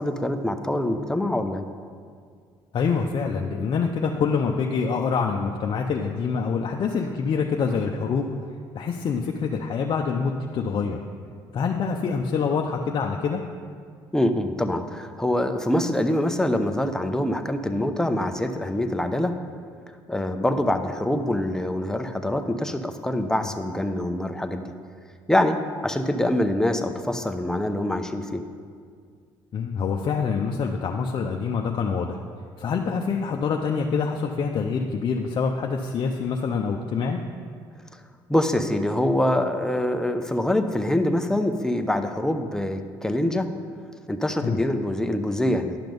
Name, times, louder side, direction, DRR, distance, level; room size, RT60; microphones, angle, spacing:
voice 1, 0.0-1.6 14.1-19.3 20.1-24.7 25.3-28.4 37.9-38.0 38.3-43.5 44.1-45.8, left 1 dB, 5° left, 6 dB, 0.7 m, -25 dB
voice 2, 2.7-8.3 8.7-11.0 11.5-13.4 29.5-32.2 32.6-37.2 44.4-44.6, left 5 dB, 50° left, 1 dB, 0.6 m, -26 dB
10.5 x 5.9 x 5.3 m, 2.1 s
supercardioid pair, 80°, 10 cm